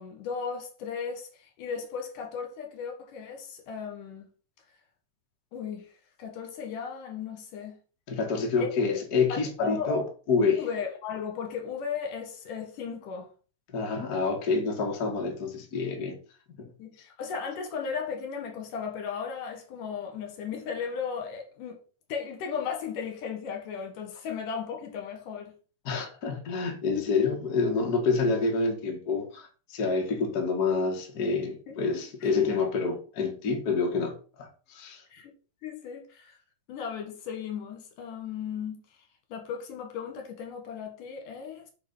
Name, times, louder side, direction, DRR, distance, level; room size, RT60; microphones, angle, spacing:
voice 1, 0.0-4.3 5.5-5.9 6.2-7.8 8.6-8.7 9.3-9.9 10.6-13.3 16.8-21.8 22.1-25.5 31.7-31.8 32.2-32.3 35.1-35.3 35.6-36.4 36.7-38.8 39.3-41.7, left 6 dB, 75° left, 3.0 m, -36 dB
voice 2, 8.1-10.7 13.7-16.2 16.6-16.7 25.9-35.0, left 4 dB, 35° left, 1.8 m, -28 dB
8.5 x 4.4 x 5.6 m
omnidirectional pair, 3.9 m